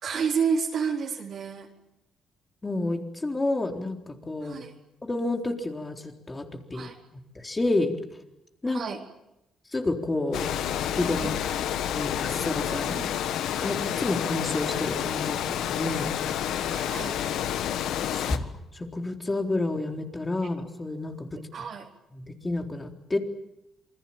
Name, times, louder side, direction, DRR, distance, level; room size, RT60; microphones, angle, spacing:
voice 1, 0.0-1.7 4.4-4.7 6.7-6.9 8.7-9.0 11.1-11.4 12.9-13.4 16.6-17.2 21.5-21.9, right 6 dB, 60° right, -1 dB, 4.2 m, -30 dB
voice 2, 2.6-4.6 5.0-6.9 7.4-7.9 8.6-8.8 9.7-10.5 10.8-11.3 11.9-13.0 13.6-16.1 18.1-21.4 22.2-23.2, left 2 dB, 20° left, 4 dB, 3.9 m, -30 dB
Water, 10.3-18.4, left 10 dB, 85° left, 1.5 m, -29 dB
28.0 x 21.5 x 8.8 m, 0.88 s
cardioid pair, 90°, 0 cm